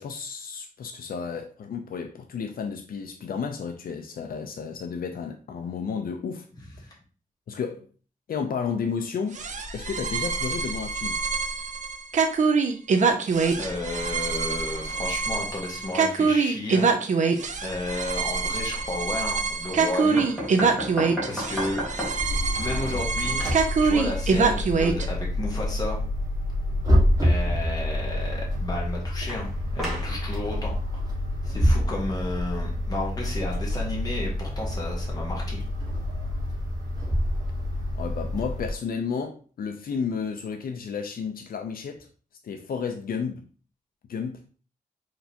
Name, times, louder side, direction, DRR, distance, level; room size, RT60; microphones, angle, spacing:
voice 1, 0.0-6.5 6.8-6.9 7.5-7.9 8.3-9.4 9.7-11.2 37.9-42.1 42.4-43.4 44.1-44.4, left 6 dB, 80° left, 0.5 m, -32 dB
sound 1, 9.3-25.0, right 4 dB, 55° right, 0.5 m, -25 dB
voice 2, 13.6-17.3 17.6-20.3 21.3-21.8 22.6-23.4 23.8-26.0 27.2-31.0 31.4-35.6, left 2 dB, 25° left, 1.3 m, -33 dB
sound 2, 20.2-22.4 22.8-23.7 29.3-30.2, equal, ahead, 1.5 m, -33 dB
sound 3, 22.2-38.7, left 1 dB, 25° right, 1.6 m, -27 dB
4.7 x 3.3 x 2.8 m
wide cardioid pair, 175°, 15 cm